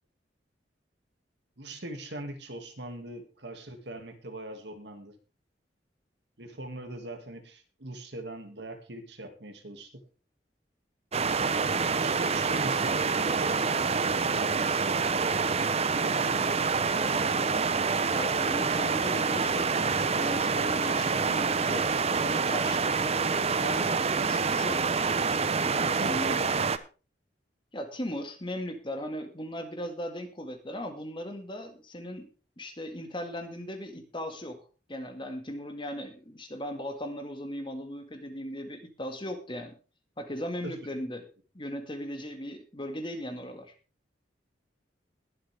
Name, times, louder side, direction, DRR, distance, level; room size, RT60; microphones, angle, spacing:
voice 1, 1.6-5.2 6.4-10.1 11.8-15.0 25.8-26.6 40.6-40.7, right 1 dB, 70° right, 6 dB, 2.1 m, -41 dB
sound 1, 11.1-26.8, right 5 dB, 35° right, 0.7 m, -27 dB
voice 2, 18.1-21.9 22.2-24.8 25.5-26.4 27.7-32.3 32.6-39.8 40.2-41.3 41.5-43.7, equal, 30° left, 6 dB, 1.9 m, -38 dB
20.5 x 7.8 x 3.5 m, 0.34 s
head